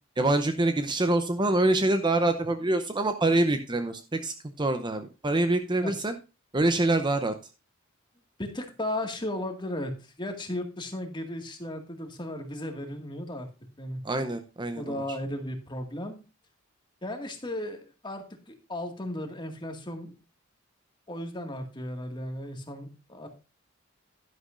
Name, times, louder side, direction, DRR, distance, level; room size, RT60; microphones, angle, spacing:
voice 1, 0.2-6.1 6.5-7.3 14.0-15.0, right 2 dB, 20° right, 9 dB, 0.7 m, -25 dB
voice 2, 8.4-13.5 13.8-14.0 14.8-16.2 17.0-20.1 21.1-23.3, left 1 dB, 25° left, 4 dB, 1.9 m, -35 dB
11.5 x 11.0 x 2.6 m, 0.30 s
head